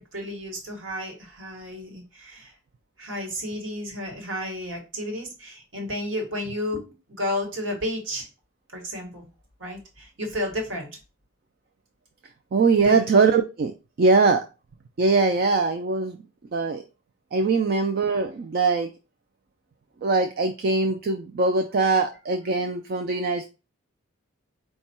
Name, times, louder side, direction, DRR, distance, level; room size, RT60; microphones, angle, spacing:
voice 1, 0.0-2.5 3.0-8.3 8.7-9.3 9.6-10.9 12.8-13.1, left 1 dB, 60° right, 2 dB, 1.3 m, -32 dB
voice 2, 12.5-13.7 14.0-14.4 15.0-16.2 16.5-16.8 17.3-18.9 20.0-23.5, right 4 dB, 45° right, 6 dB, 0.3 m, -21 dB
4.4 x 2.3 x 4.2 m, 0.31 s
head